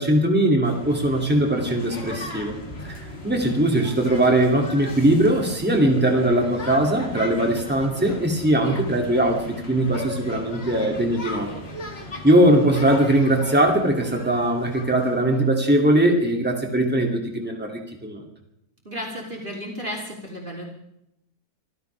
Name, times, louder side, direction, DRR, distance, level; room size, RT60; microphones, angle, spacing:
voice 1, 0.0-2.5 2.8-11.5 12.2-18.2, right 1 dB, 5° right, 1 dB, 2.7 m, -20 dB
sound 1, 0.6-15.5, left 2 dB, 40° left, 2.4 m, -37 dB
voice 2, 18.8-20.7, equal, 35° right, 0 dB, 3.3 m, -33 dB
25.5 x 16.0 x 3.5 m, 0.79 s
omnidirectional pair, 1.6 m